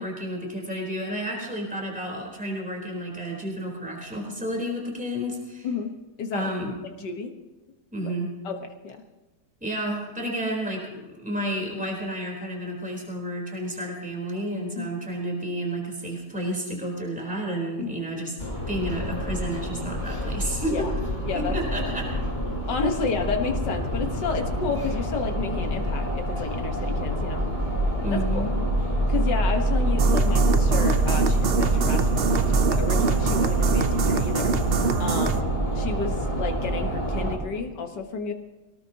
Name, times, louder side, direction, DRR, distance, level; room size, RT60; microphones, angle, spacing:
voice 1, 0.0-5.7 6.3-6.7 7.9-8.3 9.6-18.4 18.7-20.9 21.3-22.1 28.0-28.5, right 1 dB, 5° right, -1 dB, 3.9 m, -31 dB
voice 2, 6.2-6.5 7.0-7.3 8.0-8.1 8.4-8.6 8.8-9.0 14.8-14.9 17.8-17.9 20.7-20.9 21.3-21.9 22.7-27.5 28.1-28.5 29.1-34.6 35.0-38.3, left 4 dB, 85° left, 5 dB, 2.0 m, -31 dB
sound 1, 18.4-37.4, right 1 dB, 25° left, 3.6 m, -26 dB
sound 2, 30.0-35.4, right 5 dB, 50° right, 0.7 m, -24 dB
24.5 x 18.0 x 2.9 m, 1.1 s
omnidirectional pair, 1.8 m